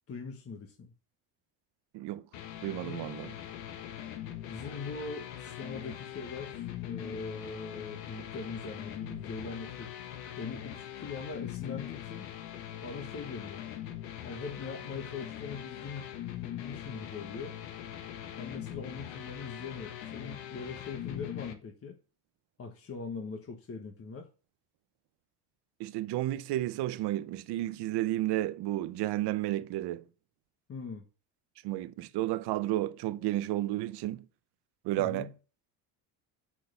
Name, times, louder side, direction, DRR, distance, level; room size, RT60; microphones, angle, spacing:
voice 1, 0.1-0.9 2.9-3.1 4.5-9.9 10.4-12.2 12.8-13.6 14.2-16.1 16.4-17.6 18.4-22.0 22.6-24.3 30.7-31.0 35.0-35.3, left 4 dB, 30° left, 1.4 m, -41 dB
sound 1, 2.3-21.5, left 11 dB, 80° left, 1.5 m, -42 dB
voice 2, 2.6-3.3 25.8-30.0 31.6-34.3 34.8-35.3, right 15 dB, 60° right, 0.8 m, -32 dB
6.5 x 6.0 x 6.7 m
supercardioid pair, 95°, 45 cm